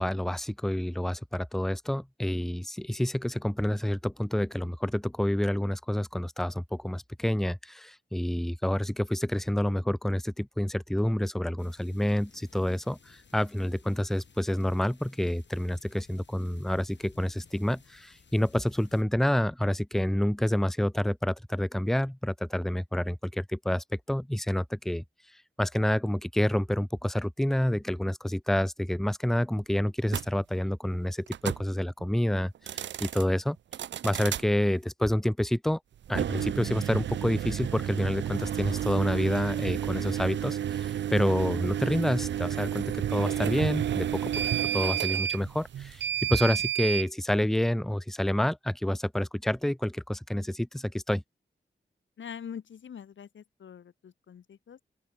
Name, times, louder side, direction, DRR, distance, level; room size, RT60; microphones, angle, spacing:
voice 1, 0.0-25.0 25.6-33.6 34.0-35.8 36.1-44.3 44.7-51.2, left 1 dB, ahead, 0.5 m, -28 dB
sound 1, 11.6-19.0, left 5 dB, 70° left, 6.2 m, -58 dB
sound 2, 30.1-30.3 31.3-31.6 32.5-33.2 33.7-34.4 36.0-47.1, right 10 dB, 75° right, 0.4 m, -31 dB
voice 2, 52.2-54.8, left 8 dB, 90° left, 3.8 m, -44 dB
open air
cardioid pair, 45°, 19 cm